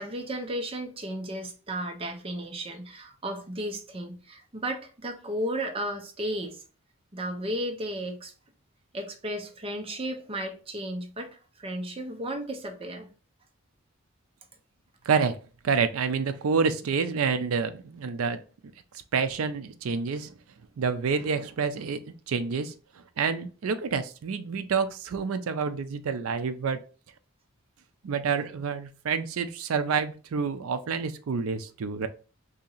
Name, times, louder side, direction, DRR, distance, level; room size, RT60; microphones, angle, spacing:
voice 1, 0.0-6.6 7.1-8.3 8.9-11.3 11.6-13.1, right 1 dB, 25° right, 0.6 m, -34 dB
voice 2, 15.0-15.4 15.6-18.4 19.1-20.3 20.8-22.0 22.3-26.8 28.0-32.1, right 5 dB, 75° right, 0.4 m, -28 dB
2.8 x 2.7 x 3.9 m
head